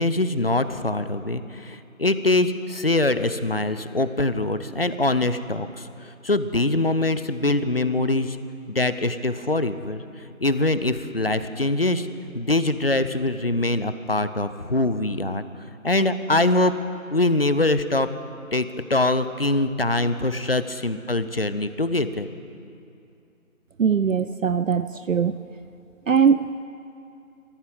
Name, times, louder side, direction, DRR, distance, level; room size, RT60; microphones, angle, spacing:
voice 1, 0.0-8.4 8.7-10.0 10.4-12.1 12.3-15.4 15.8-16.7 17.1-18.1 18.5-22.3, left 2 dB, 45° left, 12 dB, 0.5 m, -23 dB
voice 2, 23.8-25.4 26.1-26.6, right 6 dB, 70° right, 12 dB, 0.5 m, -21 dB
19.5 x 14.5 x 3.8 m, 2.7 s
figure-of-eight pair, 165°, 41 cm